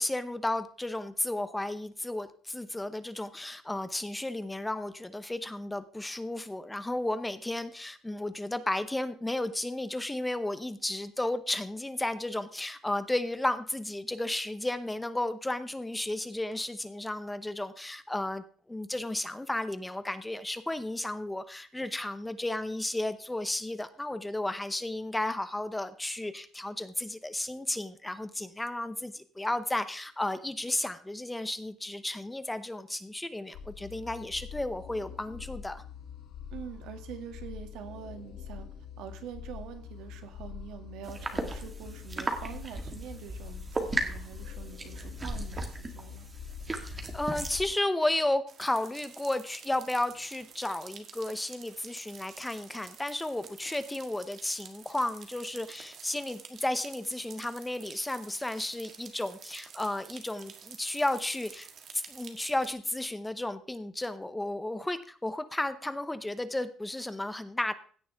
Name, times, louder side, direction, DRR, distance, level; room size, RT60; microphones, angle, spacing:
voice 1, 0.0-35.8 46.8-61.7 61.9-67.7, left 1 dB, 5° left, 12 dB, 0.7 m, -33 dB
sound 1, 33.5-47.8, left 8 dB, 70° left, 2.2 m, -45 dB
voice 2, 36.5-38.7 39.0-46.3, right 8 dB, 85° right, 6 dB, 2.2 m, -45 dB
sound 2, 41.0-47.6, right 2 dB, 20° right, 1.8 m, -36 dB
sound 3, 48.5-62.7, right 7 dB, 45° right, 1.7 m, -50 dB
16.0 x 10.0 x 3.5 m, 0.44 s
cardioid pair, 170°, 0 cm